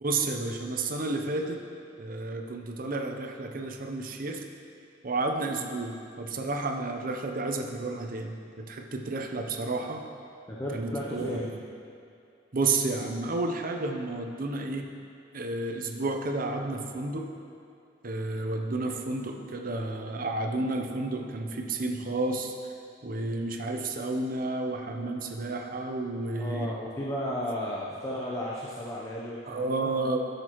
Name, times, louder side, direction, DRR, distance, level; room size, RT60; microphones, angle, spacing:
voice 1, 0.0-1.6 2.0-4.4 5.0-10.0 10.7-11.6 12.5-14.9 15.3-17.3 18.0-22.5 23.0-26.7 29.5-30.2, right 2 dB, 50° right, 4 dB, 0.7 m, -31 dB
voice 2, 10.5-11.4 26.3-29.9, equal, 15° left, -5 dB, 0.7 m, -34 dB
12.5 x 6.6 x 3.0 m, 2.5 s
head